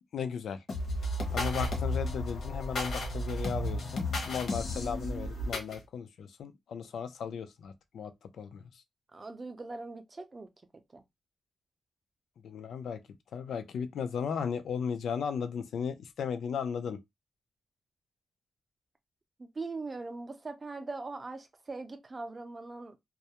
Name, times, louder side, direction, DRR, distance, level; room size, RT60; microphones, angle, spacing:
voice 1, 0.1-0.6 1.3-8.1 8.4-8.6 12.4-13.0 13.3-17.0, left 7 dB, 90° left, 0.4 m, -36 dB
sound 1, 0.7-5.8, left 1 dB, 60° left, 0.8 m, -33 dB
voice 2, 9.1-10.5 10.9-11.0 19.4-23.0, right 3 dB, 25° right, 0.4 m, -41 dB
2.3 x 2.0 x 2.8 m
wide cardioid pair, 145°, 0 cm